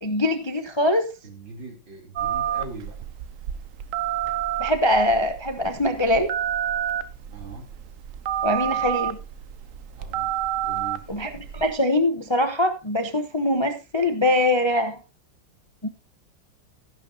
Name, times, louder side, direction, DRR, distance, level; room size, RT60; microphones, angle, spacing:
voice 1, 0.0-1.1 4.6-6.3 8.4-9.2 11.1-15.0 15.8-15.9, left 1 dB, 30° left, 7 dB, 0.5 m, -23 dB
voice 2, 1.2-3.0 7.3-7.7 9.9-11.1, right 3 dB, 80° right, 1 dB, 4.1 m, -41 dB
Telephone, 2.2-11.7, right 10 dB, 60° right, 0.8 m, -29 dB
14.0 x 11.0 x 2.8 m, 0.29 s
omnidirectional pair, 2.0 m